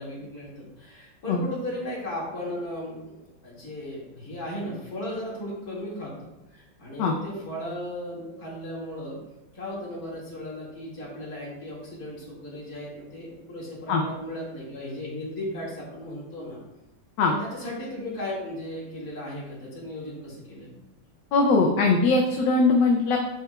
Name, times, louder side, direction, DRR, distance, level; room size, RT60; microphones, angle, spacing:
voice 1, 0.0-9.2 9.5-16.6 17.3-20.8, left 1 dB, 50° left, -6 dB, 2.6 m, -36 dB
voice 2, 21.3-23.2, left 3 dB, 75° left, 1 dB, 1.3 m, -20 dB
9.2 x 4.9 x 2.3 m, 0.97 s
omnidirectional pair, 2.0 m